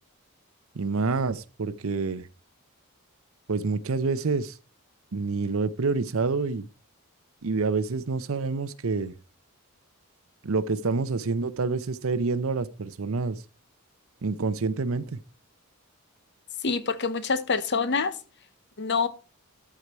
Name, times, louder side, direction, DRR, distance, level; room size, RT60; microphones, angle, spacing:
voice 1, 0.7-2.2 3.5-4.5 5.1-6.6 7.4-9.1 10.4-13.4 14.2-15.2, right 4 dB, 65° right, 0.6 m, -27 dB
voice 2, 16.6-18.1 18.8-19.1, left 4 dB, 50° left, 0.8 m, -26 dB
13.0 x 4.7 x 4.3 m
head